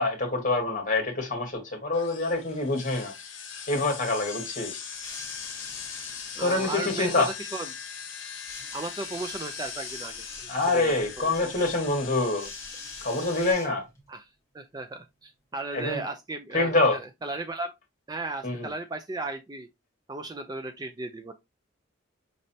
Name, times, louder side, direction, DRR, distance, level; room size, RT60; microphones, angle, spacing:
voice 1, 0.0-3.1 3.7-4.8 6.4-7.3 10.5-12.5 13.0-13.8 15.7-16.0 16.5-17.0 18.4-18.7, left 2 dB, 40° left, 1.5 m, -26 dB
sound 1, 1.9-13.5, left 7 dB, 65° left, 0.9 m, -40 dB
sound 2, 4.9-6.6 8.5-10.5 12.4-14.1 15.1-15.2, left 2 dB, 15° left, 1.3 m, -45 dB
voice 2, 6.4-7.1 7.4-7.7 8.7-10.3 10.7-11.3 14.1-14.2 14.5-17.7 18.1-19.7 20.1-21.3, right 2 dB, 20° right, 0.3 m, -35 dB
5.3 x 3.1 x 2.7 m
head